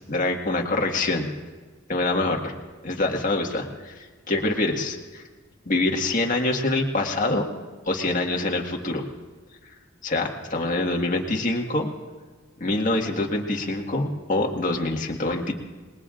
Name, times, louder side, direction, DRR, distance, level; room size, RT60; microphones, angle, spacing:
voice 1, 0.1-1.3 1.9-2.5 2.8-5.2 5.7-7.4 7.9-9.1 10.0-11.9 12.6-15.5, left 2 dB, 40° left, 1 dB, 1.7 m, -25 dB
28.0 x 20.5 x 2.5 m, 1.4 s
head